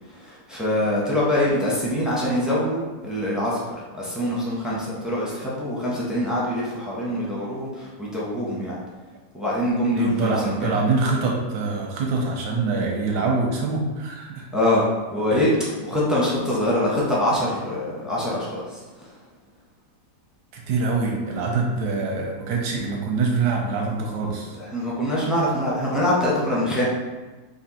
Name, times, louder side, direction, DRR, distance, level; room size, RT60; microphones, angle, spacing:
voice 1, 0.1-8.8 9.3-10.7 14.5-15.5 15.8-19.1 24.6-26.8, left 1 dB, ahead, -6 dB, 0.6 m, -24 dB
voice 2, 9.9-14.5 15.3-15.4 20.5-24.5, right 4 dB, 85° right, -1 dB, 1.3 m, -24 dB
4.3 x 2.7 x 4.2 m, 1.2 s
omnidirectional pair, 1.8 m